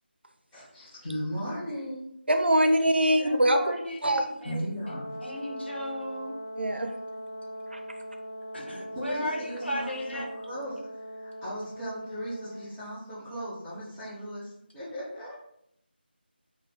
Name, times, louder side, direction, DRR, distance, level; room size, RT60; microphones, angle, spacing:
voice 1, 0.5-2.2 4.4-5.1 8.9-15.3, equal, 5° left, -12 dB, 0.3 m, -37 dB
voice 2, 2.3-3.6 4.0-4.2 6.6-6.9 7.7-7.8, right 1 dB, 75° right, 5 dB, 0.4 m, -22 dB
voice 3, 3.2-4.6 4.9-6.4 8.5-10.3, equal, 90° left, 1 dB, 0.7 m, -36 dB
Brass instrument, 4.8-12.7, equal, 50° left, 0.5 m, -40 dB
2.3 x 2.0 x 3.1 m, 0.75 s
figure-of-eight pair, 165°, 6 cm